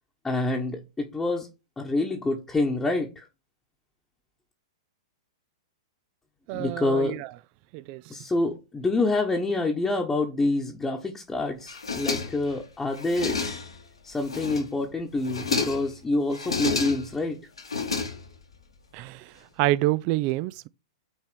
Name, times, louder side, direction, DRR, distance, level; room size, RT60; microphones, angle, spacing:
voice 1, 0.2-1.5 1.8-3.2 6.5-7.2 8.1-13.4 14.0-17.4, left 2 dB, 10° left, 1.1 m, -27 dB
voice 2, 6.5-7.3 7.7-8.0 18.9-19.3 19.6-20.7, right 17 dB, 40° right, 0.4 m, -27 dB
sound 1, 11.7-12.6 12.9-13.8 14.2-14.8 15.2-15.9 16.3-17.2 17.6-18.5, left 4 dB, 85° left, 1.7 m, -30 dB
6.0 x 4.2 x 6.0 m
figure-of-eight pair, 105°, 3 cm